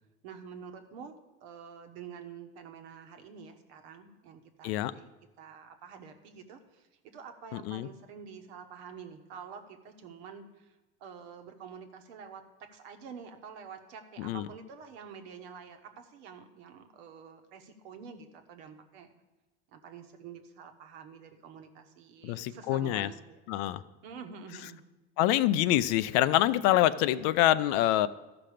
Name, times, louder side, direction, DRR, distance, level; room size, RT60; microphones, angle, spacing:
voice 1, 0.2-1.1 1.4-5.1 5.4-10.7 11.0-19.1 19.7-23.4 24.0-24.8, right 6 dB, 75° right, 6 dB, 1.3 m, -48 dB
voice 2, 7.5-7.9 14.2-14.5 22.2-23.1 23.5-23.8 25.2-28.1, left 14 dB, 60° left, 15 dB, 0.5 m, -26 dB
13.0 x 5.9 x 5.0 m, 1.1 s
supercardioid pair, 110°, 33 cm